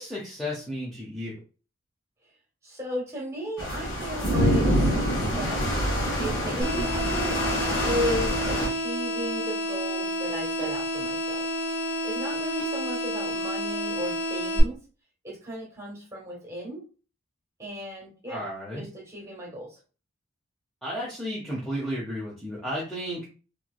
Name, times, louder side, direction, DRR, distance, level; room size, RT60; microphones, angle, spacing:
voice 1, 0.0-1.3 18.3-18.9 20.8-23.3, equal, ahead, -6 dB, 0.7 m, -33 dB
voice 2, 2.6-5.8 6.2-7.4 7.8-11.4 12.0-14.8 15.2-16.8 17.6-18.4 18.7-19.8, equal, 15° right, -2 dB, 1.4 m, -35 dB
sound 1, 3.6-8.7, equal, 60° left, 1.6 m, -26 dB
sound 2, 6.6-14.6, equal, 25° left, 1.6 m, -30 dB
3.2 x 3.0 x 2.3 m, 0.35 s
head